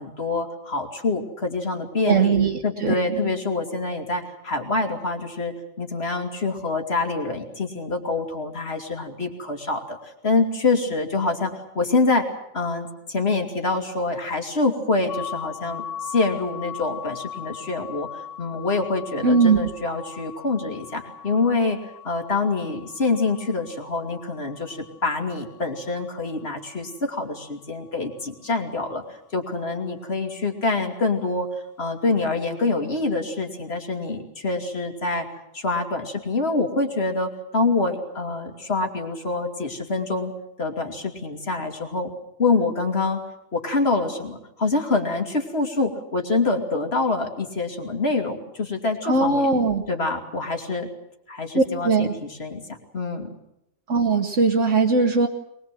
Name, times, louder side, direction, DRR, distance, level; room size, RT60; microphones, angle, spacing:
voice 1, 0.0-2.4 2.6-21.8 22.0-31.5 31.8-35.3 35.5-40.3 40.6-42.1 42.4-43.2 43.5-49.5 49.9-50.9 51.3-53.3, left 3 dB, 50° left, 3 dB, 3.0 m, -26 dB
voice 2, 2.0-3.0 19.2-19.6 49.0-49.8 51.5-52.1 53.9-55.3, right 4 dB, 70° right, 2 dB, 1.7 m, -19 dB
sound 1, 15.1-26.8, left 8 dB, 70° left, 1.5 m, -40 dB
23.0 x 21.5 x 7.6 m, 0.83 s
omnidirectional pair, 1.3 m